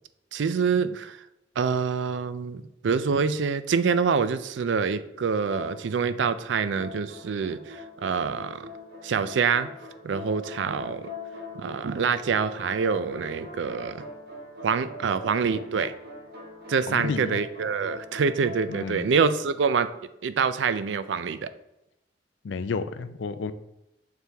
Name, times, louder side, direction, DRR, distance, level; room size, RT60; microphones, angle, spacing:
voice 1, 0.3-1.2 1.6-8.7 9.0-9.7 10.0-11.1 11.6-14.0 14.6-15.9 16.7-19.9 20.2-21.5, right 5 dB, 85° right, 13 dB, 0.4 m, -26 dB
sound 1, 5.5-6.3 6.7-18.9, left 3 dB, 60° right, 1.4 m, -42 dB
voice 2, 16.9-17.4 18.7-19.1 22.4-23.5, left 4 dB, 85° left, 12 dB, 0.4 m, -31 dB
6.7 x 4.6 x 3.4 m, 0.88 s
head